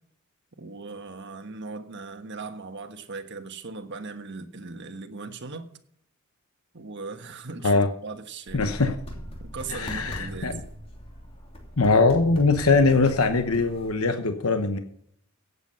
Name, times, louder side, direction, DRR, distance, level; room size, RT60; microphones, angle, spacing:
voice 1, 0.6-5.7 6.7-8.6 9.5-10.5, right 4 dB, 55° right, 1.4 m, -38 dB
voice 2, 8.5-9.0 9.7-10.6 11.8-14.8, left 3 dB, 80° left, 1.1 m, -21 dB
sound 1, 8.5-13.9, equal, 25° left, 3.0 m, -40 dB
16.5 x 8.2 x 5.6 m
head